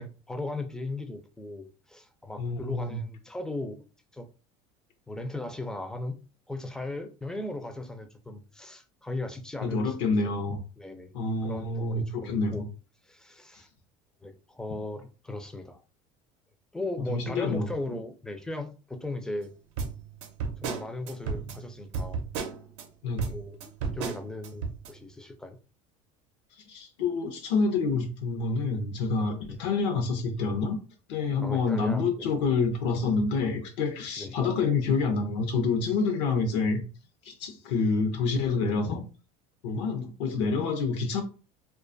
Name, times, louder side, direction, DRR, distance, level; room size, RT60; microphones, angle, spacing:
voice 1, 0.0-3.8 4.1-4.3 5.1-6.2 6.5-9.9 10.2-10.3 10.8-11.1 11.4-12.7 13.0-13.7 14.2-15.8 16.7-19.5 20.6-22.2 23.3-25.6 29.4-29.6 31.4-32.3 34.2-34.4, left 2 dB, 5° left, 0.3 m, -37 dB
voice 2, 2.4-3.0 9.6-10.6 11.1-12.7 17.1-17.7 23.0-23.3 26.7-30.8 31.1-36.8 37.2-39.0 39.6-41.2, left 4 dB, 85° left, 0.6 m, -27 dB
sound 1, 19.8-22.9 23.2-24.9, right 5 dB, 80° right, 0.6 m, -34 dB
2.4 x 2.3 x 2.5 m
supercardioid pair, 125°, 15 cm